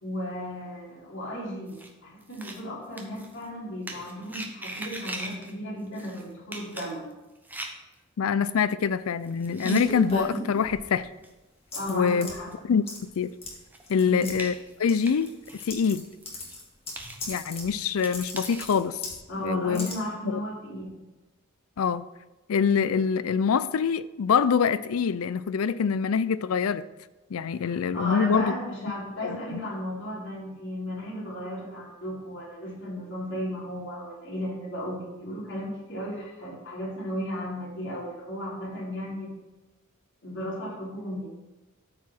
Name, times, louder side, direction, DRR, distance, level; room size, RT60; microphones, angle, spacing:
voice 1, 0.0-7.1 11.8-12.5 14.1-14.4 19.3-21.0 27.7-39.4 40.2-41.3, equal, 60° left, 3.4 m, -35 dB
sound 1, 1.7-1.9 2.2-2.6 3.0-3.4 3.9-5.5 5.9-6.2 6.5-7.9 8.5-8.6 9.2-10.1 10.6-10.7 11.2-11.3 12.0-12.1 12.5-12.6 13.0-13.1 13.5-15.7 16.0-16.6 16.9-18.7, right 1 dB, 10° right, 0.9 m, -40 dB
voice 2, 8.2-11.1 11.9-12.3 12.6-12.8 13.2-13.3 13.9-14.5 14.8-15.3 15.7-16.1 17.3-19.0 19.4-19.9 20.2-20.4 21.8-22.0 22.5-26.8 27.3-28.5 29.2-29.6, left 6 dB, 80° left, 0.4 m, -25 dB
sound 2, 9.6-10.9 11.7-12.3 12.9-13.2 13.4-13.5 13.8-14.3 14.9-16.0 16.3-17.7 18.0-19.2 19.7-19.9, right 1 dB, 30° left, 2.0 m, -34 dB
13.0 x 4.8 x 4.4 m
head